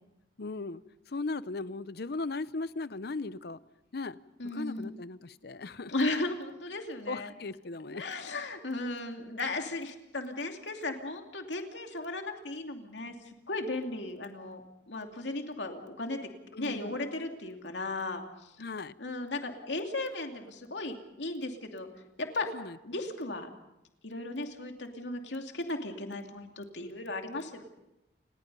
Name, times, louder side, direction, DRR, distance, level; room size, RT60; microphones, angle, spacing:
voice 1, 0.4-0.8 1.1-3.6 3.9-4.2 4.4-5.9 7.1-8.0 16.5-17.0 18.6-18.9 22.5-22.8, left 3 dB, 65° left, 16 dB, 0.7 m, -37 dB
voice 2, 4.4-4.9 5.9-7.3 7.9-13.1 13.5-16.2 16.6-18.5 19.0-21.9 22.2-22.5 22.8-23.5 24.0-27.7, left 2 dB, 90° left, 4 dB, 2.6 m, -36 dB
29.0 x 20.0 x 5.5 m, 0.92 s
head